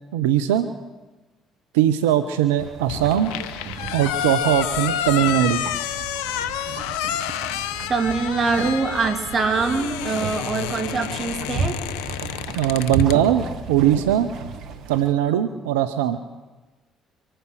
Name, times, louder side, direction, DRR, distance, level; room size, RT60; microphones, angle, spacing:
voice 1, 0.1-0.7 1.7-3.3 3.9-5.6 12.6-14.3 14.9-16.2, right 11 dB, 85° right, 10 dB, 0.6 m, -20 dB
sound 1, 2.6-15.1, right 4 dB, 65° right, 1.3 m, -34 dB
sound 2, 2.9-13.2, left 11 dB, 80° left, 0.7 m, -29 dB
voice 2, 7.9-11.8, right 4 dB, 40° right, 6 dB, 2.1 m, -23 dB
24.5 x 9.1 x 6.2 m, 1.2 s
hypercardioid pair, 55°, 0 cm